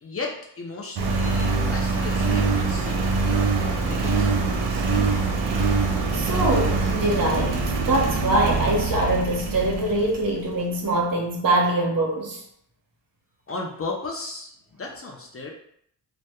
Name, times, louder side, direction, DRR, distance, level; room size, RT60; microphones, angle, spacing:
voice 1, 0.0-3.0 3.6-5.3 13.5-14.5 14.8-15.5, left 3 dB, 35° left, 0 dB, 0.4 m, -35 dB
Engine, 1.0-10.4, right 4 dB, 85° right, 0.5 m, -24 dB
voice 2, 6.1-12.4, right 1 dB, 50° right, -1 dB, 0.8 m, -23 dB
2.1 x 2.0 x 2.8 m, 0.68 s
cardioid pair, 65°, 42 cm